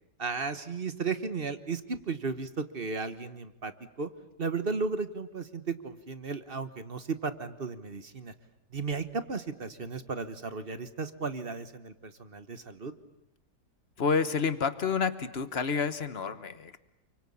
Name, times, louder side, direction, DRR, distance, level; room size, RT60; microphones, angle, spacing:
voice 1, 0.2-3.7 4.0-4.1 4.4-8.3 8.7-12.9, right 4 dB, 35° right, 11 dB, 1.3 m, -34 dB
voice 2, 14.0-16.8, left 5 dB, 40° left, 12 dB, 1.3 m, -29 dB
29.0 x 24.0 x 8.6 m, 0.86 s
omnidirectional pair, 1.8 m